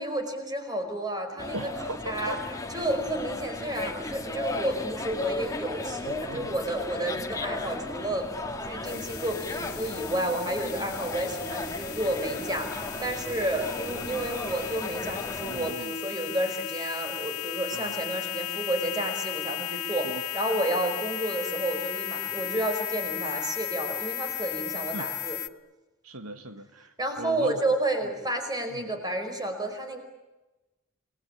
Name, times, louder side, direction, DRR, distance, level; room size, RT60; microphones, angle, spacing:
voice 1, 0.0-1.7 2.1-2.4 2.7-8.3 8.6-25.4 27.0-30.0, right 1 dB, 20° right, 6 dB, 5.0 m, -31 dB
sound 1, 1.4-15.7, left 2 dB, 15° left, 2.0 m, -35 dB
voice 2, 1.5-2.4 6.0-6.5 15.4-15.9 17.7-18.0 20.0-20.2 24.9-25.1 26.0-27.7 28.7-28.9, right 2 dB, 80° right, 9 dB, 1.6 m, -39 dB
sound 2, 8.8-25.5, left 14 dB, 80° left, 1.0 m, -35 dB
28.5 x 20.5 x 9.9 m, 1.1 s
head